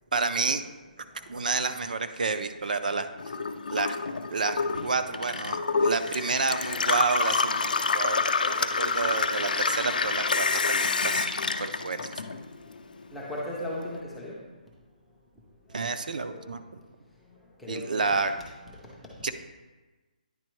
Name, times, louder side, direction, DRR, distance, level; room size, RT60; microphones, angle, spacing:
voice 1, 0.1-0.6 1.0-3.4 3.7-4.0 4.3-12.2 15.7-16.6 17.7-18.3 19.2-19.3, right 4 dB, 60° right, 9 dB, 0.4 m, -30 dB
Gurgling / Water tap faucet / Sink (filling or washing), 3.2-12.7 13.0-13.9, left 4 dB, 70° left, 0.4 m, -28 dB
voice 2, 13.1-14.4 16.1-16.6 17.6-18.2, left 1 dB, ahead, -6 dB, 0.4 m, -37 dB
9.6 x 4.2 x 3.1 m, 1.2 s
hypercardioid pair, 180°, 5 cm